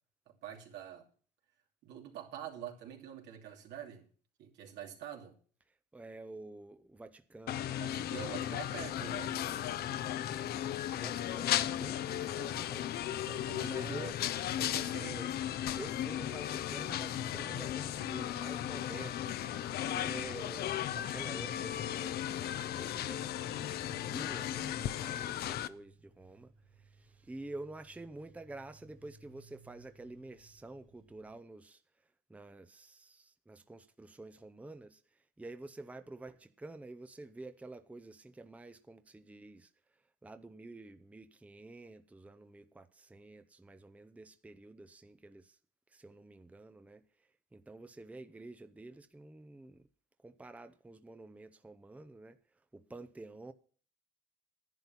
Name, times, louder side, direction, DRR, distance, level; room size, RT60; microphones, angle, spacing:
voice 1, 0.3-1.1 1.8-4.1 4.4-5.4 7.8-9.4 13.1-14.2 14.6-15.2, right 9 dB, 80° right, 2.8 m, -46 dB
voice 2, 5.7-7.7 11.0-13.0 13.6-14.2 15.0-15.3 15.7-19.4 19.8-31.8 32.3-45.6 45.9-49.9 50.2-52.4 52.7-53.5, right 2 dB, 10° right, 0.7 m, -49 dB
sound 1, 7.5-25.7, left 11 dB, 60° left, 0.7 m, -36 dB
sound 2, 23.5-31.4, right 3 dB, 50° right, 2.9 m, -64 dB
11.0 x 9.6 x 5.7 m
cardioid pair, 115°, 18 cm